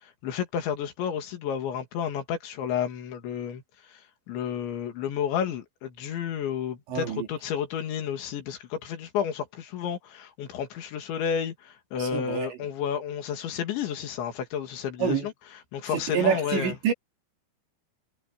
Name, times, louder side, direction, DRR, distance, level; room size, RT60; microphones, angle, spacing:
voice 1, 0.0-4.0 4.3-16.8, left 8 dB, 85° left, 4.9 m, -31 dB
voice 2, 6.9-7.3 12.0-12.5 15.0-15.3 15.9-16.9, right 7 dB, 75° right, 5.7 m, -27 dB
omnidirectional pair, 5.1 m